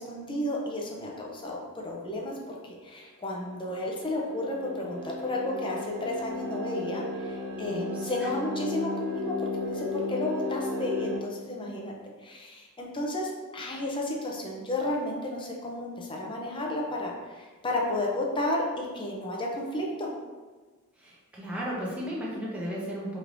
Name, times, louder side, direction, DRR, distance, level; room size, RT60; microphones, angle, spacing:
voice 1, 0.0-2.5 2.8-12.0 12.2-20.1, left 1 dB, 25° left, -1 dB, 0.6 m, -32 dB
sound 1, 3.4-11.2, left 2 dB, 70° right, 0.8 m, -34 dB
voice 2, 7.7-8.3 21.0-23.2, equal, 5° right, -6 dB, 0.8 m, -35 dB
4.5 x 3.2 x 2.6 m, 1.3 s
head